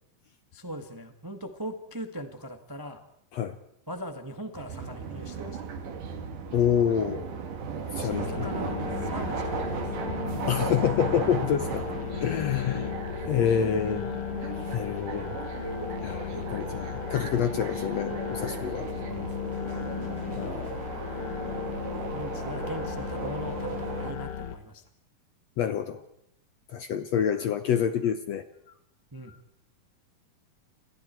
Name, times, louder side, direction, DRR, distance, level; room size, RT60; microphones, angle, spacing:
voice 1, 0.5-3.0 3.9-5.7 7.9-9.9 12.5-12.7 19.0-19.3 22.1-24.8 29.1-29.3, equal, 15° right, 6 dB, 0.8 m, -40 dB
sound 1, 4.5-24.1, right 6 dB, 65° right, 3.6 m, -36 dB
voice 2, 6.5-7.2 7.9-8.5 10.5-11.8 12.1-12.9 13.3-14.1 14.4-15.3 16.0-18.9 20.4-20.8 25.6-26.0 26.7-28.4 29.3-29.4, left 8 dB, 65° left, 10 dB, 1.7 m, -27 dB
sound 2, 8.1-24.5, left 9 dB, 50° left, 1.8 m, -35 dB
30.0 x 26.0 x 4.6 m, 0.78 s
omnidirectional pair, 4.1 m